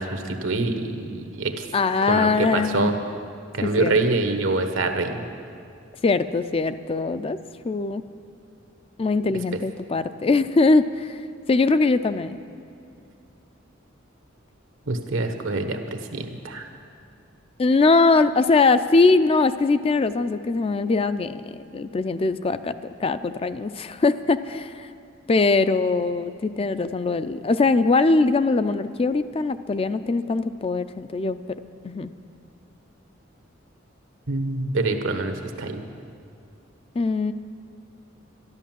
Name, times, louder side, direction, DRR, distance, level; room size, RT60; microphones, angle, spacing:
voice 1, 0.0-1.7 2.1-2.9 3.5-5.3 14.9-16.7 34.3-35.8, right 2 dB, 80° right, 7 dB, 1.2 m, -25 dB
voice 2, 1.7-2.9 3.6-3.9 6.0-7.4 7.6-8.0 9.0-11.2 11.5-12.4 17.6-22.7 23.0-24.9 25.3-31.4 31.8-32.1 37.0-37.3, left 3 dB, 30° left, 11 dB, 0.4 m, -21 dB
12.5 x 11.5 x 7.5 m, 2.4 s
head